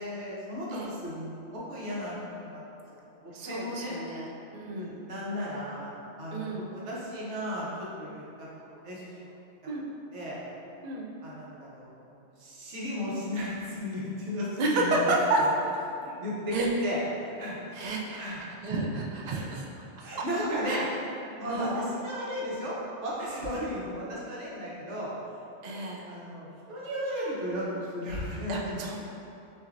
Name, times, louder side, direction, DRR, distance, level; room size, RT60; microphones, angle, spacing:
voice 1, 0.0-2.5 3.2-3.9 4.7-5.9 6.2-9.3 10.1-10.4 11.2-15.5 15.9-18.4 19.2-19.5 20.0-20.9 21.4-25.1 25.6-27.7 27.9-28.8, equal, 75° right, -6 dB, 1.2 m, -35 dB
voice 2, 3.3-4.3 4.5-5.0 6.3-6.6 9.6-9.8 10.8-11.1 14.6-15.4 16.5-16.7 17.7-18.2 18.6-19.7 20.0-20.1 20.7-20.8 21.5-21.8 25.6-26.0 28.5-29.0, right 2 dB, 55° right, -1 dB, 0.4 m, -30 dB
6.0 x 2.7 x 2.5 m, 2.8 s
omnidirectional pair, 1.2 m